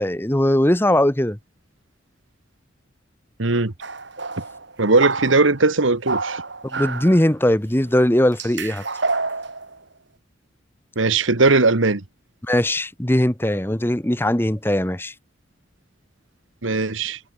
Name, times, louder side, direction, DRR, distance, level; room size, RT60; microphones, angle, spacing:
voice 1, 0.0-1.4 6.6-8.8 12.4-15.1, left 1 dB, 10° left, 1.2 m, -20 dB
voice 2, 3.4-3.7 4.8-6.4 10.9-12.0 16.6-17.2, right 3 dB, 85° right, 1.6 m, -18 dB
sound 1, 3.8-5.6 6.0-7.3 7.8-8.0 8.3-9.8, right 3 dB, 65° right, 4.1 m, -28 dB
head